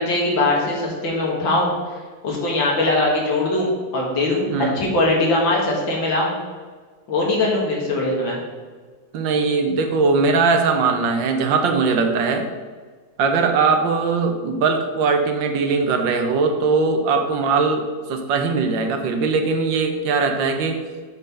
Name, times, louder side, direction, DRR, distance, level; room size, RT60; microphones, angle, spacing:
voice 1, 0.0-1.7 2.2-4.5 4.7-6.4 7.1-8.4, left 2 dB, 85° left, -2 dB, 2.4 m, -21 dB
voice 2, 4.5-4.8 9.1-12.5 13.2-20.8, right 4 dB, 80° right, 5 dB, 1.5 m, -20 dB
7.8 x 3.8 x 5.5 m, 1.5 s
omnidirectional pair, 2.1 m